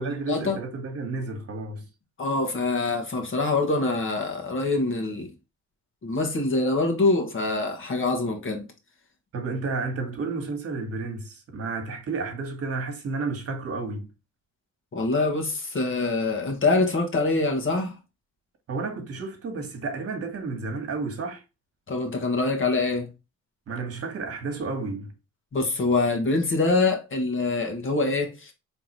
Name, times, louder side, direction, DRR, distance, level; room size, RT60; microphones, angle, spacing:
voice 1, 0.0-1.9 9.3-14.1 18.7-21.4 23.7-25.1, right 3 dB, 50° right, 1.5 m, -31 dB
voice 2, 2.2-5.3 6.0-8.7 14.9-17.9 21.9-23.1 25.5-28.5, left 3 dB, 40° left, 1.6 m, -25 dB
3.9 x 3.5 x 3.0 m
cardioid pair, 90°, 30 cm